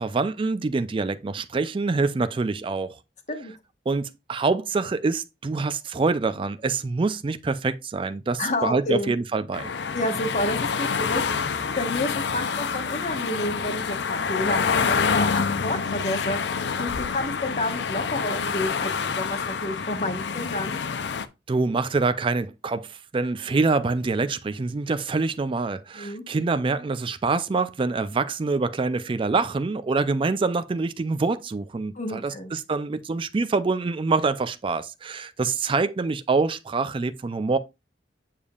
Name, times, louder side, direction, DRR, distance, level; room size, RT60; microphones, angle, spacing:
voice 1, 0.0-3.0 3.9-9.7 21.5-37.6, right 3 dB, 30° right, 0.4 m, -25 dB
voice 2, 8.4-9.1 9.9-20.8 25.9-26.2 31.9-32.5, left 1 dB, 45° left, 1.2 m, -30 dB
sound 1, 9.5-21.3, left 6 dB, 75° left, 0.5 m, -27 dB
7.2 x 6.6 x 2.4 m
head